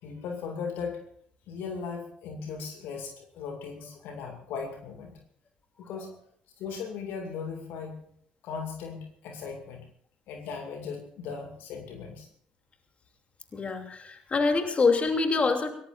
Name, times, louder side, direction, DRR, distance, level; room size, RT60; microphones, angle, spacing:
voice 1, 0.0-1.0 1.5-5.2 5.9-6.1 6.6-8.1 8.4-9.9 10.3-12.3, left 5 dB, 60° left, 4 dB, 2.4 m, -37 dB
voice 2, 13.5-15.7, left 4 dB, 35° left, 5 dB, 2.9 m, -25 dB
23.5 x 18.0 x 2.6 m, 0.66 s
figure-of-eight pair, 50°, 4 cm